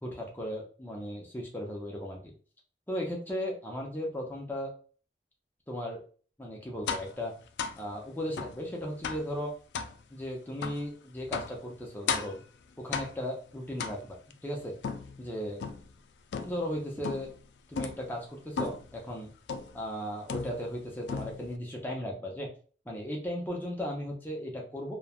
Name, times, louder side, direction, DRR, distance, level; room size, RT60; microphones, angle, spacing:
voice 1, 0.0-2.2 2.9-4.7 5.7-6.0 6.4-7.3 7.8-9.5 10.1-12.4 12.8-14.2 14.4-14.7 15.2-15.6 16.4-17.3 17.7-19.3 19.7-22.5 22.9-25.0, equal, 10° left, -1 dB, 0.5 m, -36 dB
sound 1, 6.9-7.2 7.6-7.8 8.4-8.6 9.0-9.3 9.7-10.0 10.6-10.8 11.3-11.6 12.1-12.4 12.9-13.3 13.8-14.3 14.8-15.9 16.3-16.7 17.0-17.4 17.7-18.1 18.6-18.9 19.5-19.8 20.3-20.8 21.1-21.6, left 5 dB, 85° left, 0.3 m, -35 dB
3.1 x 2.1 x 2.3 m, 0.40 s
head